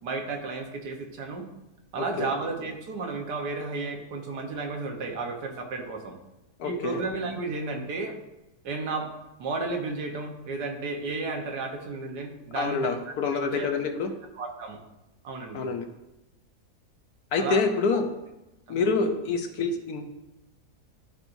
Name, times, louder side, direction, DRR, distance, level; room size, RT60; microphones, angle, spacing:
voice 1, 0.0-1.5 1.9-6.2 6.6-8.2 8.6-9.1 9.4-13.7 14.4-14.8 15.2-15.7 17.4-17.6 18.7-19.0, right 3 dB, 90° right, 2 dB, 1.6 m, -33 dB
voice 2, 2.0-2.3 6.6-7.0 12.5-14.1 15.5-15.9 17.3-18.0 18.7-20.0, left 4 dB, 70° left, 5 dB, 1.3 m, -27 dB
12.0 x 4.5 x 2.6 m, 0.96 s
omnidirectional pair, 1.7 m